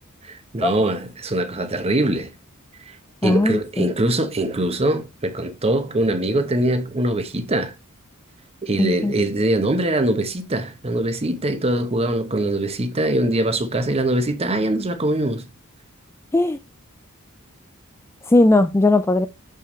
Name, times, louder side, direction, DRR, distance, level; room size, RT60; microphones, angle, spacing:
voice 1, 0.2-2.3 2.9-3.0 3.2-7.7 8.6-15.4, right 1 dB, 30° right, 0.9 m, -22 dB
voice 2, 3.2-3.9 8.8-9.1 16.3-16.6 18.3-19.3, left 2 dB, 10° left, 0.3 m, -18 dB
6.8 x 5.6 x 3.1 m
head